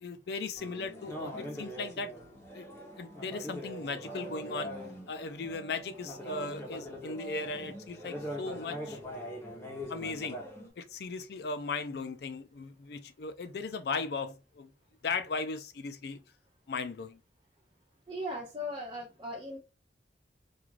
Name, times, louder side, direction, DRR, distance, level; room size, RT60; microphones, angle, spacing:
voice 1, 0.0-2.1 2.5-2.7 3.0-4.7 5.1-9.0 9.9-10.4 10.8-14.7 15.0-16.2 16.7-17.2, left 4 dB, 60° left, 0.4 m, -37 dB
sound 1, 0.6-10.7, equal, 15° left, 0.6 m, -42 dB
voice 2, 18.1-19.6, left 1 dB, 25° right, 0.5 m, -38 dB
2.4 x 2.3 x 3.1 m
head